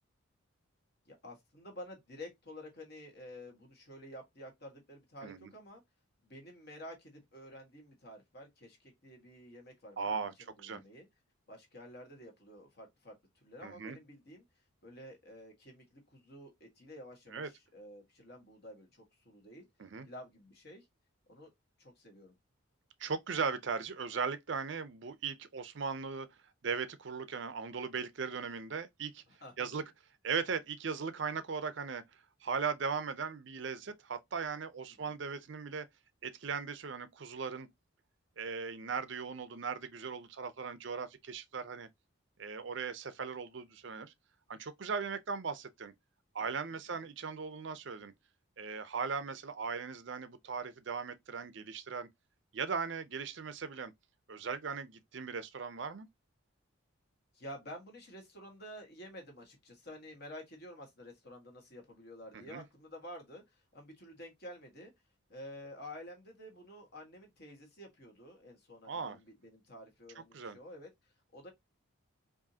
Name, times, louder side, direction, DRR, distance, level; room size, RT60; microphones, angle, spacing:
voice 1, 1.0-5.8 6.2-11.1 11.5-13.1 13.4-14.4 14.8-19.6 20.0-20.9 21.3-21.5 21.8-22.3 29.3-29.8 35.0-35.1 46.9-47.0 57.3-64.9 65.3-71.5, left 1 dB, 50° left, 1.4 m, -50 dB
voice 2, 10.0-10.3 10.6-10.8 13.6-14.0 17.3-17.5 19.8-20.1 23.0-26.3 26.6-29.2 29.6-29.8 30.2-32.0 32.4-35.9 36.2-37.7 38.4-41.9 42.4-44.1 44.5-45.9 46.3-48.1 48.6-52.1 52.5-53.9 54.3-56.1 62.3-62.6 68.8-69.2 70.3-70.6, right 5 dB, 55° right, 0.5 m, -38 dB
4.8 x 2.6 x 2.7 m
head